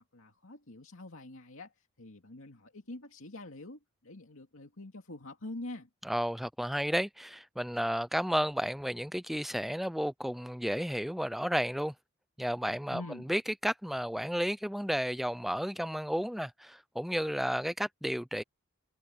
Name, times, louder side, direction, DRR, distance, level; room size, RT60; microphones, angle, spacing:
voice 1, 0.1-5.9 12.9-13.3, left 2 dB, 65° left, 2.4 m, -45 dB
voice 2, 6.0-11.9 12.4-13.0 13.3-18.4, equal, ahead, 0.4 m, -32 dB
head